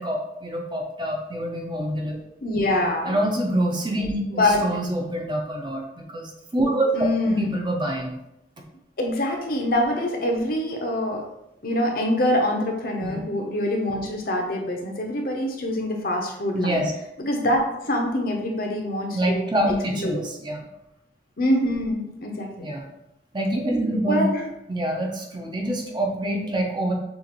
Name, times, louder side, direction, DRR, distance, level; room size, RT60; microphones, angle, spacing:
voice 1, 0.0-2.2 3.1-6.9 7.2-8.1 13.0-13.2 16.5-16.9 19.1-20.6 22.6-22.9 23.3-24.2 24.7-26.9, right 1 dB, 25° right, 0 dB, 0.7 m, -26 dB
voice 2, 2.4-3.2 4.3-4.6 6.9-7.6 9.0-11.2 11.6-16.8 17.2-19.4 20.0-20.2 21.4-22.7 24.0-24.4, left 1 dB, 55° left, 1 dB, 0.8 m, -25 dB
6.4 x 2.5 x 3.0 m, 0.85 s
head